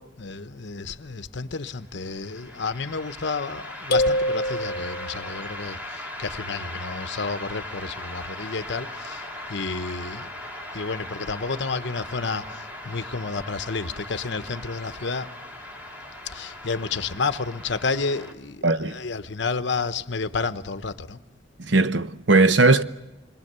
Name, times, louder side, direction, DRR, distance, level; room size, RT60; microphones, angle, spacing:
voice 1, 0.0-10.3 10.7-15.3 16.3-21.2, left 4 dB, 65° left, 1.0 m, -31 dB
sound 1, 1.9-18.3, left 1 dB, 10° right, 2.2 m, -39 dB
sound 2, 3.9-5.4, left 1 dB, 50° left, 1.4 m, -25 dB
voice 2, 18.6-19.0 21.7-22.8, right 3 dB, 65° right, 0.8 m, -18 dB
27.5 x 22.5 x 6.8 m
head